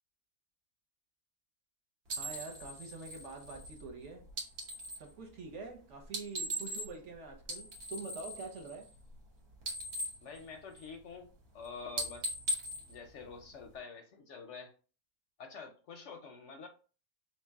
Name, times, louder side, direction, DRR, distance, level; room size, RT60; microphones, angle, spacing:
sound 1, 2.1-5.1 6.0-7.1 7.4-9.3 9.5-11.1 11.4-11.7 11.9-13.8, right 1 dB, 75° right, 1.5 m, -40 dB
voice 1, 2.2-4.3 5.0-8.9, right 4 dB, 60° right, 1.0 m, -45 dB
voice 2, 10.2-12.3 12.9-14.7 15.4-16.7, left 5 dB, 65° left, 0.7 m, -47 dB
3.2 x 3.0 x 3.4 m
omnidirectional pair, 1.6 m